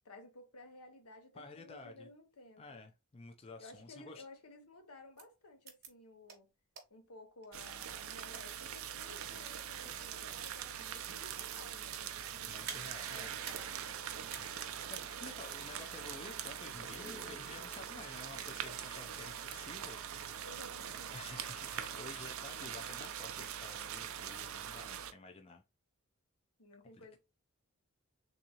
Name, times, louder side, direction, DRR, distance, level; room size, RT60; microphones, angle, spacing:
voice 1, 0.0-2.8 3.6-6.5 6.9-13.9 20.4-21.2 26.6-27.2, left 2 dB, 85° left, 0.9 m, -56 dB
voice 2, 1.3-2.1 2.6-4.2 12.5-13.4 14.4-14.6 14.9-20.5 21.1-25.6 26.9-27.2, left 3 dB, 25° left, 0.4 m, -52 dB
sound 1, 5.2-5.3 5.7-5.9 6.3-6.4 6.8-6.9 7.4-8.4 9.0-9.2 9.7-10.1 10.4-12.1 12.6-12.9 13.3-13.7 14.0-14.1 14.3-14.7 15.5-15.7 16.3-16.4 16.9-17.1 17.6-17.8 18.2-18.3 18.7-19.2 19.6-20.1, right 7 dB, 45° right, 0.9 m, -49 dB
sound 2, 7.5-25.1, right 9 dB, 70° right, 0.5 m, -43 dB
sound 3, 16.6-18.3, left 2 dB, 5° right, 0.7 m, -53 dB
3.6 x 2.7 x 2.8 m
head